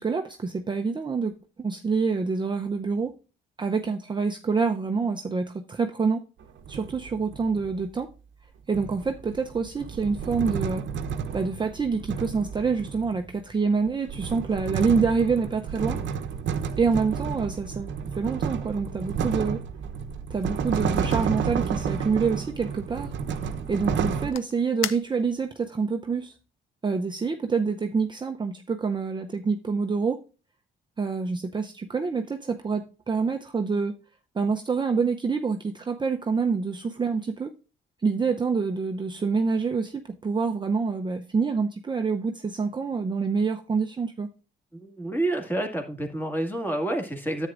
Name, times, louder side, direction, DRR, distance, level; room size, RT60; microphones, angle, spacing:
voice 1, 0.0-1.3 1.6-3.1 3.6-6.2 6.7-8.1 8.7-10.9 11.3-16.0 16.8-19.6 20.3-23.1 23.7-26.3 26.8-30.2 31.0-34.0 34.3-37.5 38.0-44.3, right 5 dB, 25° right, 0.6 m, -26 dB
sound 1, 6.4-7.7 8.7-13.3 13.9-24.3, right 6 dB, 70° right, 0.8 m, -31 dB
sound 2, 20.4-25.6, left 12 dB, 85° left, 0.5 m, -41 dB
voice 2, 44.7-47.5, right 1 dB, 10° left, 2.1 m, -28 dB
10.0 x 8.2 x 2.5 m
cardioid pair, 90°, 20 cm